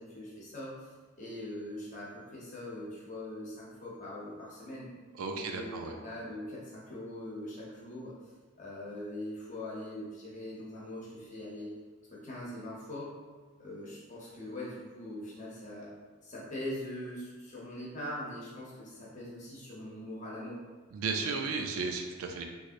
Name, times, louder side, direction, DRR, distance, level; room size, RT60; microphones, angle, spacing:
voice 1, 0.0-4.9 5.3-8.2 8.5-11.7 12.1-13.1 13.6-15.9 16.2-20.6, left 1 dB, 35° left, -6 dB, 0.8 m, -42 dB
voice 2, 5.1-6.0 20.9-22.4, right 4 dB, 70° right, 3 dB, 0.4 m, -34 dB
3.0 x 2.7 x 2.5 m, 1.4 s
head